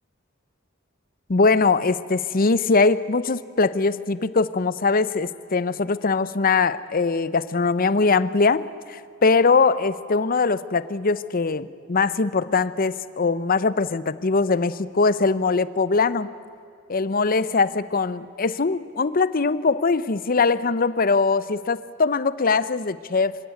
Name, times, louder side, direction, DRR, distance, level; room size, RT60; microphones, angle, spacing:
voice 1, 1.3-8.6 8.9-16.3 16.9-23.4, left 4 dB, 45° left, 16 dB, 0.7 m, -21 dB
25.5 x 16.5 x 9.3 m, 2.4 s
head